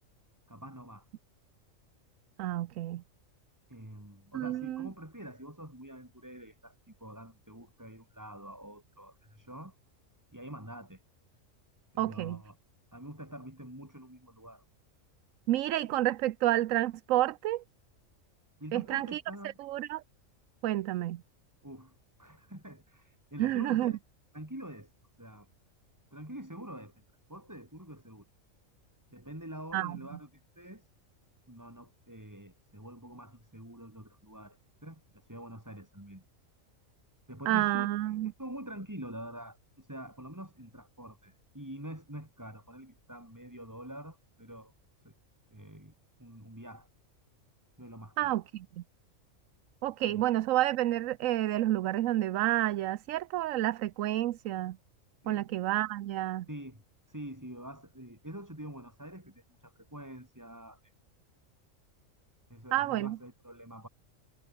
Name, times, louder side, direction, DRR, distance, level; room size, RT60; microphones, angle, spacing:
voice 1, 0.5-1.1 3.7-9.7 10.3-11.0 11.9-12.5 12.9-14.6 18.6-19.6 21.6-24.0 24.3-24.9 25.2-25.5 26.1-26.9 27.3-28.2 29.1-30.9 31.5-36.2 37.3-44.7 45.0-45.1 45.5-45.9 46.2-46.9 47.8-48.4 50.1-50.2 55.2-55.5 56.5-56.8 57.1-60.9 62.5-63.9, right 1 dB, 15° right, 4.3 m, -46 dB
voice 2, 2.4-3.0 4.3-4.9 12.0-12.4 15.5-17.6 18.7-19.2 19.6-20.0 20.6-21.2 23.4-23.9 29.7-30.0 37.5-38.3 48.2-48.6 49.8-54.8 55.3-56.5 62.7-63.2, right 14 dB, 80° right, 1.0 m, -29 dB
omnidirectional pair, 1.4 m